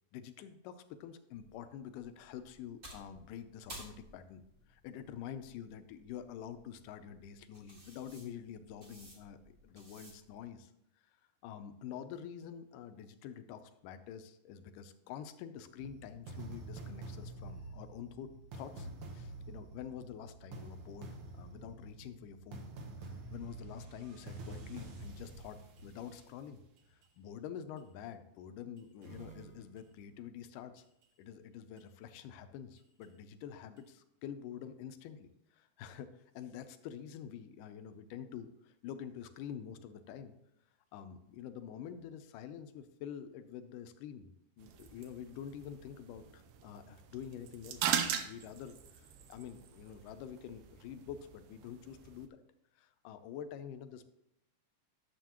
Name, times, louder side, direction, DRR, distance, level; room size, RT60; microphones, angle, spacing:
voice 1, 0.1-9.4 9.6-10.7 11.0-11.2 11.4-22.7 23.0-26.6 26.9-30.8 31.2-40.4 40.9-44.3 44.6-52.4 52.8-54.0, left 9 dB, 85° left, 10 dB, 2.3 m, -47 dB
sound 1, 1.3-10.5, right 1 dB, 30° right, 1.0 m, -56 dB
sound 2, 15.8-27.1 27.8-27.9 28.8-30.0 30.8-31.1 31.8-31.9 32.8-33.1 33.8-33.9, right 2 dB, 65° right, 1.4 m, -48 dB
sound 3, 44.6-52.3, right 9 dB, 85° right, 2.3 m, -41 dB
11.5 x 7.2 x 3.0 m, 0.82 s
omnidirectional pair, 3.7 m